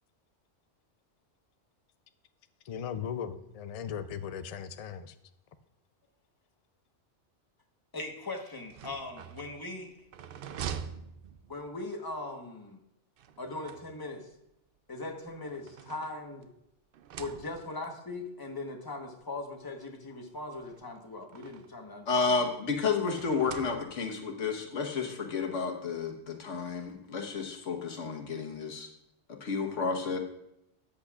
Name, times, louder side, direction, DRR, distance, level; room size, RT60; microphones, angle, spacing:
voice 1, 2.7-5.1, left 8 dB, 70° left, 10 dB, 0.3 m, -37 dB
voice 2, 7.9-9.9 11.5-12.8 13.4-14.3 14.9-16.5 17.2-22.1 22.4-22.5, left 2 dB, 20° left, 2 dB, 1.1 m, -40 dB
sound 1, 8.6-11.9 13.2-14.3 15.2-16.6 16.9-17.9 18.8-18.9 19.2-19.3 20.5-21.9 23.1-24.2, right 8 dB, 60° right, 0.6 m, -45 dB
voice 3, 22.1-28.9 29.3-30.2, left 4 dB, 85° left, 3 dB, 1.5 m, -31 dB
13.0 x 8.5 x 2.4 m, 0.81 s
omnidirectional pair, 1.2 m